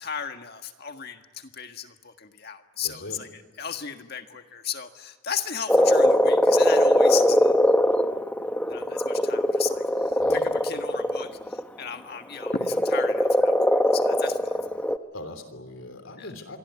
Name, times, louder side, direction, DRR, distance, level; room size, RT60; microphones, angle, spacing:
voice 1, 0.0-7.6 8.7-14.6 16.2-16.3, left 8 dB, 50° left, 6 dB, 1.7 m, -35 dB
voice 2, 2.8-3.2 10.2-10.5 15.1-16.6, left 2 dB, 65° left, 9 dB, 3.3 m, -40 dB
Frog, 5.7-11.6 12.4-15.0, equal, 5° left, 0.8 m, -21 dB
26.5 x 22.5 x 9.6 m, 1.5 s
head